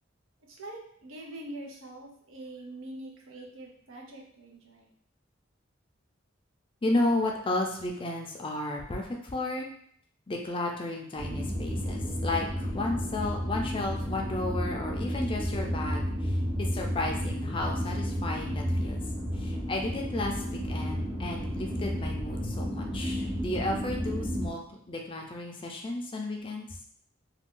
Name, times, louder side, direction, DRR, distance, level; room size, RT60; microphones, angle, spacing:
voice 1, 0.5-4.9, right 1 dB, 85° right, 0 dB, 0.7 m, -44 dB
voice 2, 6.8-9.7 10.3-19.0 19.3-26.7, left 2 dB, 25° left, 1 dB, 0.4 m, -33 dB
sound 1, 11.2-24.5, equal, 50° right, 0.8 m, -32 dB
2.5 x 2.2 x 3.6 m, 0.63 s
head